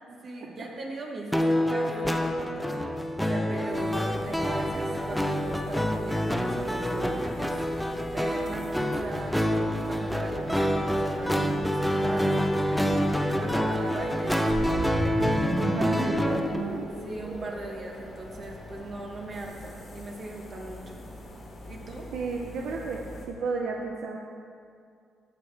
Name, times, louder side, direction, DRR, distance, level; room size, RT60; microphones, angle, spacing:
voice 1, 0.1-2.7 3.3-9.4 9.7-12.9 13.3-15.5 17.0-21.0 21.7-22.1, right 2 dB, 45° right, 0 dB, 1.0 m, -39 dB
sound 1, 1.3-16.6, equal, ahead, 0.6 m, -27 dB
sound 2, 3.7-23.3, left 1 dB, 45° left, 1.6 m, -44 dB
sound 3, 14.5-18.7, right 1 dB, 25° right, 1.6 m, -33 dB
voice 2, 15.6-16.9 22.1-23.0 23.3-24.2, right 4 dB, 80° right, 1 dB, 0.5 m, -33 dB
11.5 x 6.4 x 3.3 m, 2.3 s
cardioid pair, 90°, 0 cm